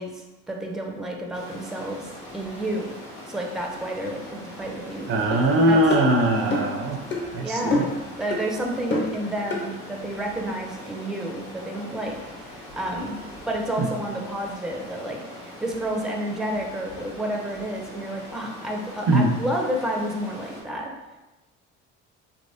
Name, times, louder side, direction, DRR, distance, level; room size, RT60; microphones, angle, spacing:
voice 1, 0.0-2.9 3.3-5.2 5.6-5.8 7.4-12.2 12.4-13.2 13.5-20.9, right 1 dB, ahead, 1 dB, 0.6 m, -30 dB
Stream, 1.3-20.6, left 1 dB, 75° left, 1.4 m, -42 dB
voice 2, 5.1-7.0 7.3-7.8 13.8-13.9 19.1-19.3, right 1 dB, 50° right, 4 dB, 0.6 m, -21 dB
sound 1, 5.3-5.4 5.9-6.1 6.5-6.8 7.1-7.2 7.7-8.0 8.3-8.4 8.9-9.1 9.5-9.6, left 2 dB, 40° left, 0.9 m, -26 dB
3.4 x 3.0 x 2.7 m, 1.1 s
supercardioid pair, 75°, 29 cm